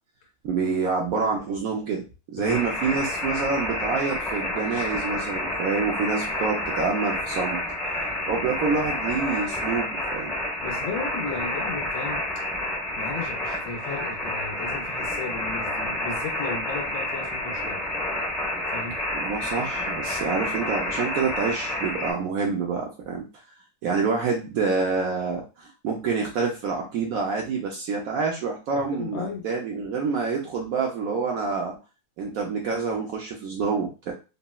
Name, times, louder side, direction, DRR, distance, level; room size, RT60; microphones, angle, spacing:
voice 1, 0.4-7.6 8.3-10.3 19.1-23.2 23.8-31.8 32.2-34.1, right 5 dB, 80° right, 0 dB, 0.7 m, -27 dB
sound 1, 2.5-22.1, left 1 dB, ahead, 0.4 m, -29 dB
voice 2, 10.6-12.2 13.0-17.8 18.7-19.0 28.7-29.4, left 4 dB, 90° left, -1 dB, 1.5 m, -35 dB
3.9 x 2.0 x 2.2 m, 0.31 s
omnidirectional pair, 2.1 m